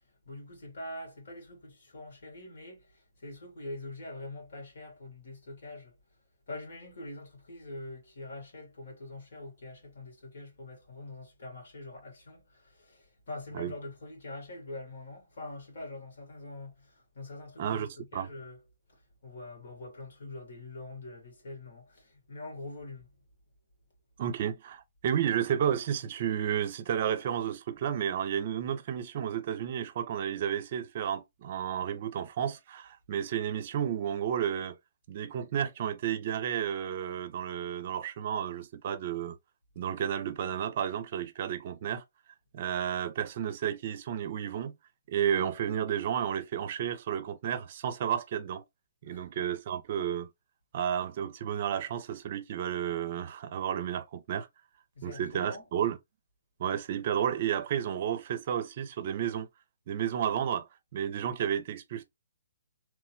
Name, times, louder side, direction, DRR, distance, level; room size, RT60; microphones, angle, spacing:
voice 1, 0.3-6.0 6.5-18.6 18.9-23.2 49.1-49.3 55.0-55.6, left 2 dB, 70° left, 1.9 m, -44 dB
voice 2, 17.6-18.3 24.2-34.8 35.1-39.4 39.8-42.0 42.5-44.8 45.1-48.6 49.0-50.3 50.7-54.5 55.0-56.0 56.6-59.5 59.9-60.7 60.9-62.0, right 9 dB, 45° right, 0.5 m, -32 dB
3.1 x 2.1 x 3.2 m
hypercardioid pair, 145°, 0 cm